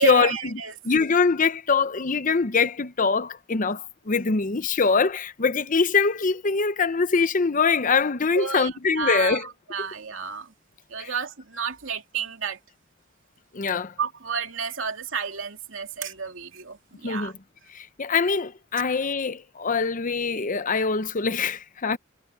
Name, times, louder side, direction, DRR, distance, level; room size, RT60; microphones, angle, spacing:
voice 1, 0.0-0.7 8.3-8.7 8.9-10.5 10.9-12.6 14.0-17.3, right 6 dB, 80° right, 2.7 m, -30 dB
voice 2, 0.8-9.5 11.0-11.1 13.5-13.9 17.0-17.3 17.7-22.0, left 5 dB, 40° left, 0.7 m, -23 dB
head